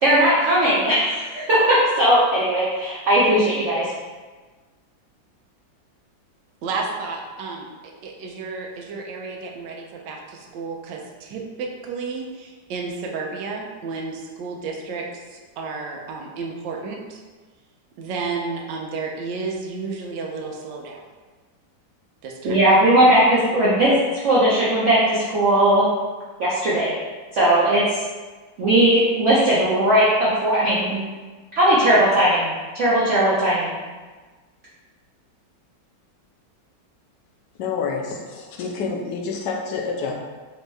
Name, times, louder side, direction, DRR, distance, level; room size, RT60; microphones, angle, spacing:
voice 1, 0.0-3.9 22.4-23.9 24.2-25.8 26.4-27.0 27.3-28.0 28.6-31.0 31.5-33.7, right 1 dB, 55° right, -8 dB, 0.8 m, -18 dB
voice 2, 6.6-17.2 18.0-21.1 22.2-22.8, right 4 dB, 80° right, 0 dB, 1.3 m, -32 dB
voice 3, 37.6-40.2, left 5 dB, 75° left, 1 dB, 1.1 m, -28 dB
4.4 x 2.8 x 3.2 m, 1.3 s
omnidirectional pair, 2.0 m